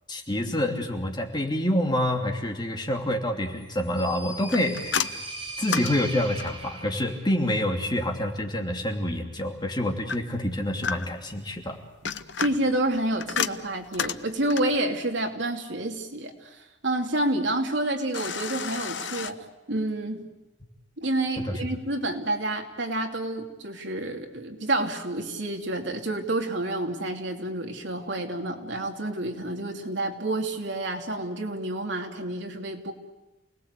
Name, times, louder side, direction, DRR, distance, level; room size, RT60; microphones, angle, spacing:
voice 1, 0.1-5.0 5.6-11.8 21.4-21.5, left 1 dB, 25° left, 2 dB, 2.8 m, -27 dB
sound 1, 3.6-7.3, right 2 dB, 30° right, 3.8 m, -38 dB
sound 2, 4.5-6.7 10.1-11.3 11.8-14.8 18.1-19.3, left 7 dB, 70° left, 0.9 m, -32 dB
voice 2, 12.4-20.2 21.0-32.9, right 1 dB, 75° right, 3 dB, 3.0 m, -29 dB
29.0 x 19.5 x 8.3 m, 1.1 s
head